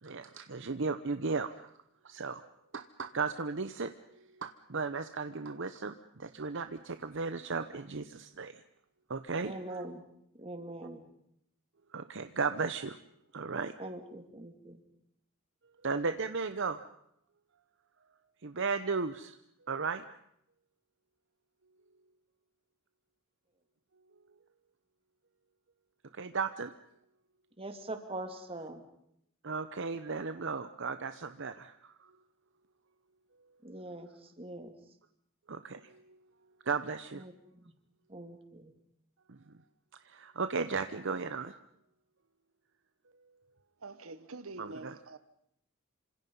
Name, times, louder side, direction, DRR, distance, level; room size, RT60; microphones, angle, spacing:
voice 1, 0.0-1.7 2.0-2.4 2.7-8.6 9.1-9.8 11.9-13.0 13.3-13.7 15.8-16.8 18.4-19.4 19.7-20.0 26.1-26.7 29.4-32.1 35.5-36.2 36.7-37.2 39.3-39.4 40.0-41.5 44.6-45.0, right 4 dB, 60° right, 0.9 m, -35 dB
voice 2, 9.4-10.0 10.4-11.0 13.8-14.8 27.6-28.8 33.6-34.1 34.4-34.7 37.2-37.3 38.1-38.7, right 2 dB, 25° right, 2.6 m, -42 dB
voice 3, 43.8-45.2, right 3 dB, 85° right, 1.2 m, -45 dB
28.0 x 26.0 x 5.5 m
head